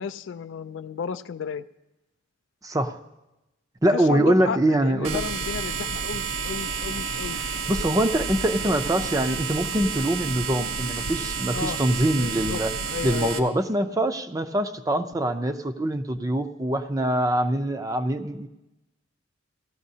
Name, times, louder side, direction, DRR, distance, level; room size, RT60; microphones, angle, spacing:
voice 1, 0.0-1.6 3.9-7.4 11.5-11.8 12.2-13.5, left 6 dB, 65° left, 11 dB, 0.4 m, -33 dB
voice 2, 2.6-3.0 3.8-5.2 7.7-12.7 13.0-18.5, right 1 dB, 15° right, 8 dB, 0.5 m, -24 dB
sound 1, 5.0-13.4, right 5 dB, 80° right, 0.9 m, -30 dB
17.5 x 13.0 x 2.8 m, 0.99 s
head